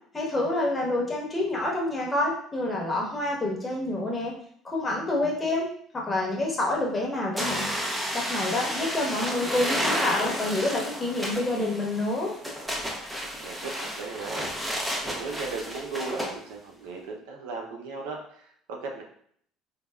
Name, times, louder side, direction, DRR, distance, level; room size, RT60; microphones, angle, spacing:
voice 1, 0.1-4.3 4.6-5.7 5.9-7.7 8.1-12.3, left 2 dB, 20° left, -2 dB, 1.0 m, -27 dB
sound 1, 7.4-16.3, equal, 5° right, 0.6 m, -31 dB
voice 2, 13.4-14.4 15.0-19.0, right 4 dB, 85° right, 0 dB, 0.5 m, -36 dB
3.3 x 2.2 x 2.3 m, 0.63 s
supercardioid pair, 90°, 0 cm